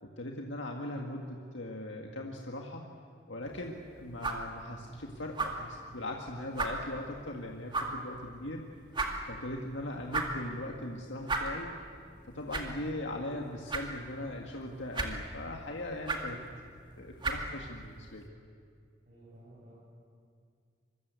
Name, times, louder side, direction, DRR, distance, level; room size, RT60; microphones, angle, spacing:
voice 1, 0.0-2.9 3.3-8.6 9.3-11.8 12.2-16.4 17.0-18.3, left 1 dB, 75° left, 1 dB, 1.9 m, -39 dB
sound 1, 3.4-18.3, right 3 dB, 25° right, 2.0 m, -39 dB
voice 2, 19.1-19.7, right 1 dB, 45° right, -7 dB, 7.2 m, -54 dB
25.5 x 23.0 x 8.3 m, 2.3 s
head